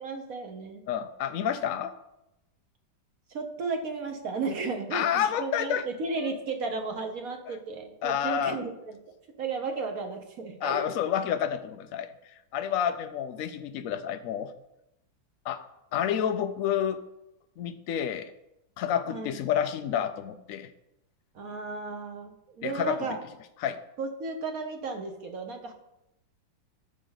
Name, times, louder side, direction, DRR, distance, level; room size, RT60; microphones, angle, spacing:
voice 1, 0.0-0.9 3.3-9.0 9.4-10.9 19.1-19.4 21.3-23.2 24.0-25.7, right 4 dB, 50° right, 4 dB, 1.3 m, -34 dB
voice 2, 0.9-1.9 4.9-5.8 6.2-6.4 7.5-7.6 8.0-8.6 10.6-12.1 12.5-14.5 15.4-15.6 15.9-17.0 17.6-18.3 18.8-20.7 22.6-23.0 23.6-23.8, left 9 dB, 85° left, 8 dB, 0.7 m, -29 dB
12.5 x 6.3 x 4.0 m, 0.87 s
omnidirectional pair, 2.1 m